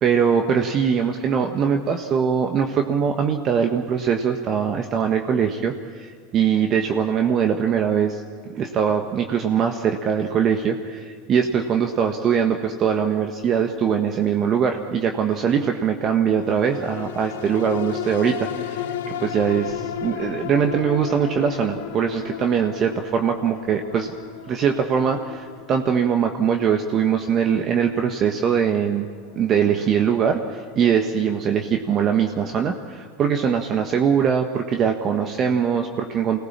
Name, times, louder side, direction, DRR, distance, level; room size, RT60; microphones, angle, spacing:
voice 1, 0.0-8.2 8.6-18.9 19.2-24.1 24.5-29.1 29.3-36.4, right 7 dB, 40° right, 5 dB, 1.4 m, -22 dB
sound 1, 16.5-31.1 31.6-31.7, left 9 dB, 80° left, 1.2 m, -35 dB
24.5 x 18.5 x 7.4 m, 2.1 s
supercardioid pair, 110°, 0 cm